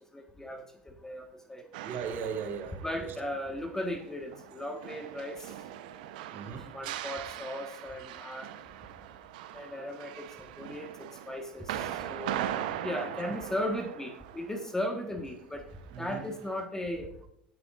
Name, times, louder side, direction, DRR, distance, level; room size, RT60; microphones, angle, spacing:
voice 1, 0.1-1.6 2.8-5.5 6.7-8.5 9.5-10.3 10.6-12.5 12.8-15.7 16.0-17.1, left 1 dB, 10° left, 4 dB, 1.6 m, -36 dB
sound 1, 1.7-15.4 15.6-16.6, right 11 dB, 70° right, 1.0 m, -41 dB
voice 2, 1.8-3.1 6.3-6.6 13.3-13.4 15.9-16.2, right 6 dB, 45° right, 1 dB, 3.2 m, -38 dB
18.5 x 9.5 x 2.6 m, 0.71 s
hypercardioid pair, 75°, 5 cm